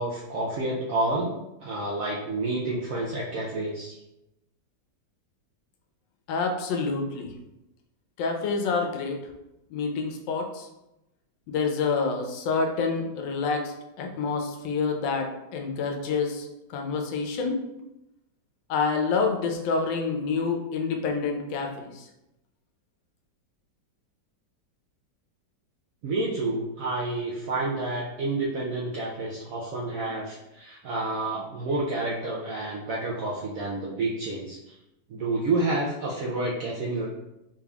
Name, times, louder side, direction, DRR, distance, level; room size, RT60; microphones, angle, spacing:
voice 1, 0.0-1.3 1.6-4.0 26.0-34.8 35.1-37.1, right 2 dB, 75° right, -4 dB, 0.7 m, -29 dB
voice 2, 6.3-7.3 8.2-9.2 9.7-10.7 11.5-17.6 18.7-22.1, left 4 dB, 85° left, 3 dB, 1.3 m, -28 dB
3.7 x 3.4 x 2.3 m, 0.91 s
omnidirectional pair, 1.9 m